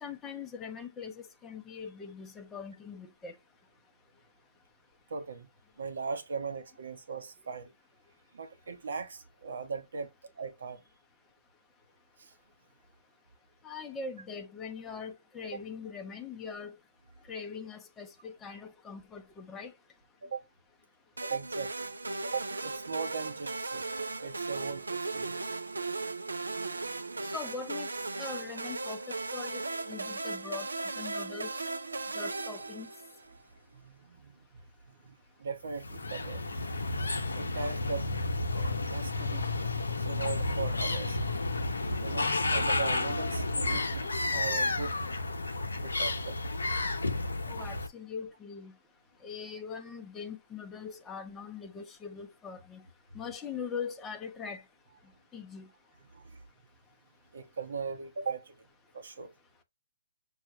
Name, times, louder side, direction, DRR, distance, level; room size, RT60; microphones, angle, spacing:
voice 1, 0.0-3.3 13.6-16.8 17.3-19.7 27.3-27.9 28.2-30.7 31.0-31.5 32.1-32.9 47.5-48.7 49.2-52.8 53.1-54.6 55.3-55.7, left 6 dB, 15° left, 0.5 m, -41 dB
voice 2, 5.1-5.5 5.8-7.7 8.3-10.8 12.2-12.3 20.2-20.4 21.2-21.7 22.2-23.8 24.2-25.5 33.7-34.3 34.9-38.1 38.5-39.5 40.0-41.2 42.0-45.0 45.8-46.4 56.1-56.4 57.3-58.5 58.9-59.3, right 5 dB, 65° right, 1.0 m, -39 dB
sound 1, 21.2-33.4, right 3 dB, 85° right, 0.5 m, -37 dB
sound 2, 35.7-47.9, left 2 dB, 85° left, 0.7 m, -31 dB
5.5 x 2.3 x 2.9 m
hypercardioid pair, 135°, 0 cm